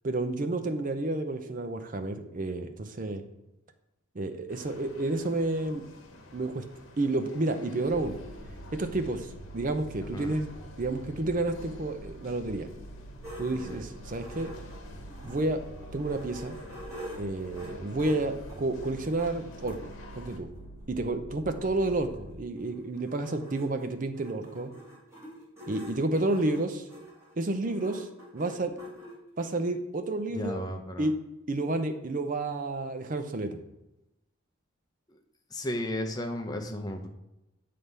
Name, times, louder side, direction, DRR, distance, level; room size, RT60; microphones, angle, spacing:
voice 1, 0.0-3.2 4.1-5.8 6.3-6.6 7.0-8.1 8.7-10.5 10.8-12.7 13.4-14.5 15.2-15.6 15.9-16.6 17.2-20.5 20.9-24.7 25.7-26.9 27.4-28.1 28.3-28.7 29.4-30.6 31.0-31.1 31.5-33.6, right 2 dB, 40° right, 8 dB, 0.5 m, -30 dB
sound 1, 4.5-20.4, left 2 dB, 80° left, 1.0 m, -51 dB
sound 2, 7.9-22.3, right 1 dB, 45° left, 1.0 m, -46 dB
voice 2, 10.0-10.4 13.5-13.9 30.3-31.1 35.5-37.1, left 1 dB, 20° left, 4 dB, 0.6 m, -34 dB
sound 3, 13.2-15.5 15.9-19.8 20.6-20.7 21.0-21.1 21.2-29.5, equal, 15° right, 1.8 m, -46 dB
7.6 x 3.4 x 5.4 m, 0.94 s
head